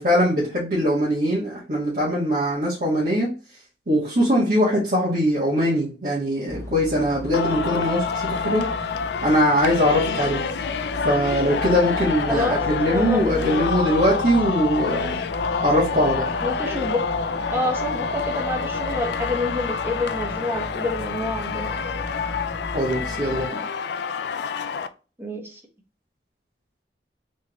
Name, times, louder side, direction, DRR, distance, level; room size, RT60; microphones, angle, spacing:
voice 1, 0.0-3.3 3.9-8.6 9.2-10.4 11.0-15.2 15.6-16.3 22.7-23.6, equal, 50° right, -8 dB, 1.4 m, -21 dB
sound 1, 6.5-23.5, left 1 dB, 15° left, 0.9 m, -36 dB
Singing, 7.3-24.9, left 5 dB, 70° left, 0.4 m, -28 dB
voice 2, 12.3-13.5 16.4-17.1 17.5-21.8 25.2-25.6, left 2 dB, 15° right, 1 dB, 0.9 m, -28 dB
3.5 x 3.5 x 2.9 m, 0.34 s
head